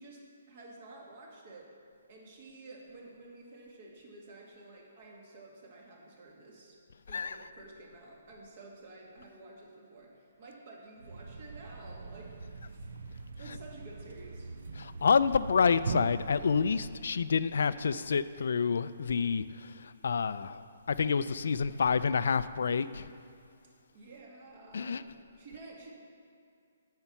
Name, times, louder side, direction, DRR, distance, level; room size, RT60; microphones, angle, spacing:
voice 1, 0.0-1.7 2.1-6.8 7.1-12.3 12.7-12.9 13.3-14.5 23.9-25.9, right 2 dB, 50° right, 2.0 m, -51 dB
Thump thud, 11.0-17.2, right 4 dB, 75° right, 0.5 m, -41 dB
voice 2, 14.8-23.1 24.7-25.0, left 5 dB, 70° left, 0.3 m, -28 dB
8.9 x 5.7 x 7.0 m
hypercardioid pair, 155°, 0 cm